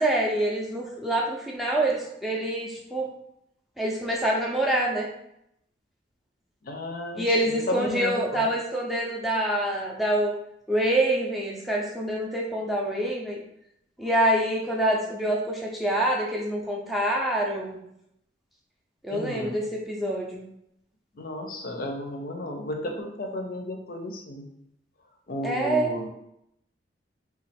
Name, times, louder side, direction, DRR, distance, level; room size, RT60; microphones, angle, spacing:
voice 1, 0.0-3.1 3.8-5.1 7.2-10.4 10.7-13.4 14.0-17.8 19.0-20.4 25.4-25.9, right 1 dB, ahead, -3 dB, 0.5 m, -26 dB
voice 2, 6.6-8.4 19.1-19.6 21.2-24.5 25.3-26.1, left 1 dB, 55° left, 2 dB, 0.5 m, -33 dB
3.0 x 2.3 x 4.2 m, 0.77 s
head